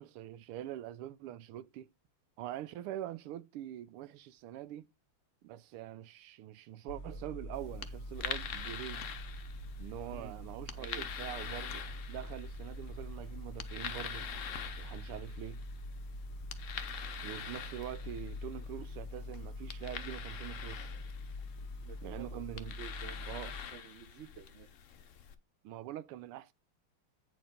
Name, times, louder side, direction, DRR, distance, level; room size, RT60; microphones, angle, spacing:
voice 1, 0.0-1.9 2.4-4.9 5.4-9.1 9.8-11.8 12.1-14.3 14.8-15.6 17.2-20.9 22.0-22.8 23.3-23.5 25.6-26.5, right 12 dB, 85° right, 1.6 m, -44 dB
sound 1, 6.9-23.6, left 1 dB, 55° left, 1.5 m, -44 dB
sound 2, 7.5-25.3, left 8 dB, 70° left, 0.7 m, -45 dB
voice 2, 10.8-11.1 21.8-24.7, right 9 dB, 60° right, 0.7 m, -51 dB
9.2 x 4.4 x 5.1 m
omnidirectional pair, 2.4 m